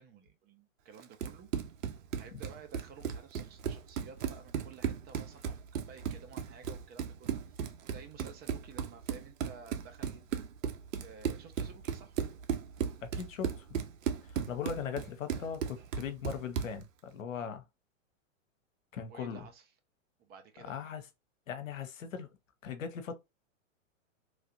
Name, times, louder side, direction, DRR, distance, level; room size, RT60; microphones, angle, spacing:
voice 1, 0.0-1.5 2.2-10.2 11.0-12.1 19.0-19.7 20.2-20.8, right 5 dB, 25° right, 0.6 m, -53 dB
Run, 1.0-16.8, right 8 dB, 85° right, 0.7 m, -36 dB
voice 2, 13.0-13.8 14.3-17.6 18.9-19.4 20.7-21.0 21.5-22.3 22.6-23.1, left 7 dB, 85° left, 0.8 m, -39 dB
3.1 x 2.5 x 2.8 m
hypercardioid pair, 120°, 39 cm